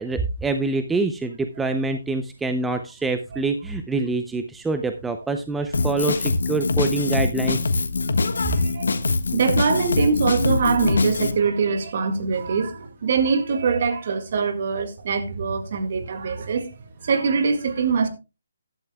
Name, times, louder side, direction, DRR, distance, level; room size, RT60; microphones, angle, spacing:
voice 1, 0.0-7.6, right 3 dB, 5° right, 0.5 m, -25 dB
Drum kit, 5.7-11.3, left 3 dB, 80° left, 1.4 m, -23 dB
voice 2, 8.3-8.9 9.3-16.7 17.0-18.1, right 5 dB, 45° right, 2.0 m, -23 dB
15.0 x 11.5 x 2.2 m
hypercardioid pair, 170°, 0 cm